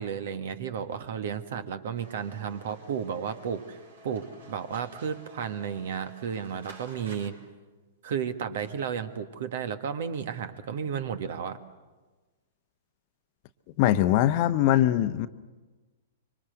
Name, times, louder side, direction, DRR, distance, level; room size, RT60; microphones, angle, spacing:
voice 1, 0.0-3.8 4.0-7.4 8.0-11.6, right 7 dB, 55° right, 1.6 m, -33 dB
sound 1, 2.0-7.3, right 2 dB, 70° right, 4.9 m, -51 dB
voice 2, 13.8-15.3, left 13 dB, 45° left, 0.9 m, -22 dB
26.0 x 24.5 x 8.0 m
figure-of-eight pair, 105°, 0 cm